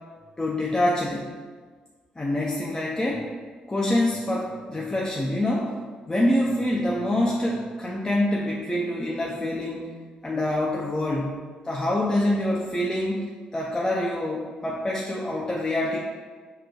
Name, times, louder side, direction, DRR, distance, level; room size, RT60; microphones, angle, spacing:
voice 1, 0.4-1.3 2.2-3.3 3.7-5.7 6.1-9.9 10.2-11.4 11.6-16.0, left 1 dB, 20° left, -4 dB, 0.6 m, -26 dB
4.3 x 2.2 x 3.8 m, 1.5 s
supercardioid pair, 55°, 3 cm